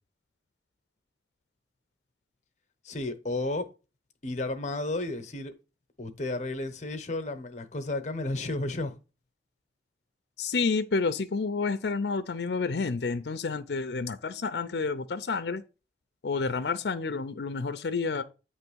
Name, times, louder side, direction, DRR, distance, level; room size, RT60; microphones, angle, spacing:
voice 1, 2.8-3.7 4.2-5.5 6.0-9.0, left 2 dB, 40° left, 0.9 m, -32 dB
voice 2, 10.4-15.6 16.2-18.2, left 4 dB, 70° left, 0.5 m, -29 dB
9.0 x 3.1 x 6.1 m
head